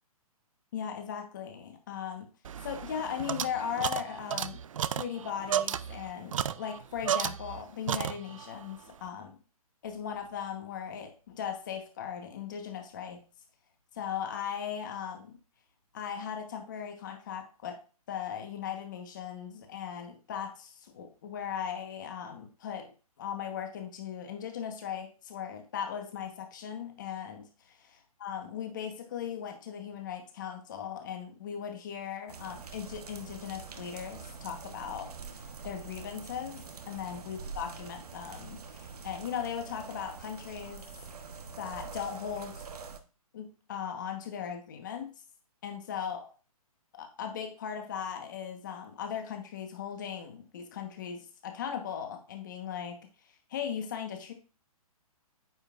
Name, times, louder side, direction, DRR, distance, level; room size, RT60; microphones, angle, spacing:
voice 1, 0.7-2.3 2.6-4.6 4.9-9.3 9.8-13.2 13.9-15.4 15.9-17.8 18.1-22.9 23.2-35.1 35.6-40.8 41.6-42.6 43.3-45.1 45.6-46.3 46.9-53.0 53.5-54.3, left 8 dB, 30° left, 5 dB, 1.1 m, -38 dB
sound 1, 2.4-7.6 7.9-8.5, right 9 dB, 60° right, 0.4 m, -33 dB
sound 2, 32.3-43.0, right 5 dB, 90° right, 1.1 m, -45 dB
8.9 x 5.3 x 2.5 m, 0.35 s
hypercardioid pair, 175°, 19 cm